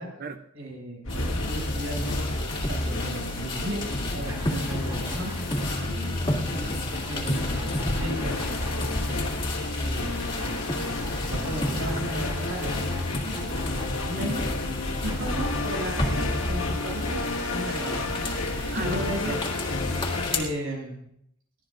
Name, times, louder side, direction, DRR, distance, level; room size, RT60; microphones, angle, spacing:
voice 1, 0.5-5.4 7.1-9.2 9.8-10.6 11.3-14.4 15.0-17.2 17.5-19.3 19.9-20.9, right 1 dB, 70° right, -1 dB, 7.5 m, -35 dB
sound 1, 1.0-20.5, left 2 dB, 75° left, 1.9 m, -30 dB
sound 2, 1.1-20.4, left 1 dB, 25° left, 2.5 m, -33 dB
sound 3, 4.3-5.8 6.9-9.4 10.4-14.3 15.1-18.3, right 1 dB, 20° right, 1.6 m, -45 dB
voice 2, 5.6-6.9 18.7-19.4, right 4 dB, 45° right, 8 dB, 0.7 m, -39 dB
23.0 x 17.0 x 2.6 m, 0.75 s
head